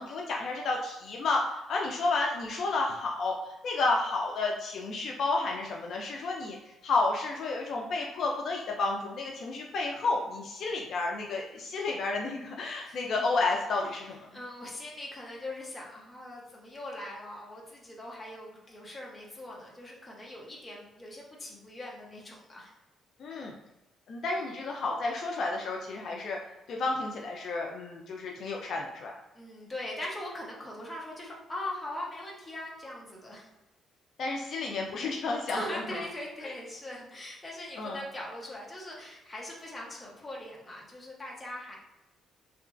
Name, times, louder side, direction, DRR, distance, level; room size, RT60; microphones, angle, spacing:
voice 1, 0.0-1.4 1.7-14.2 23.2-23.5 24.1-26.4 26.7-29.2 34.2-35.8 37.8-38.0, left 3 dB, 60° left, -1 dB, 0.3 m, -31 dB
voice 2, 14.3-22.7 29.3-33.5 35.5-41.7, left 1 dB, 20° left, -3 dB, 0.7 m, -41 dB
2.9 x 2.3 x 2.4 m, 1.0 s
cardioid pair, 125°, 0 cm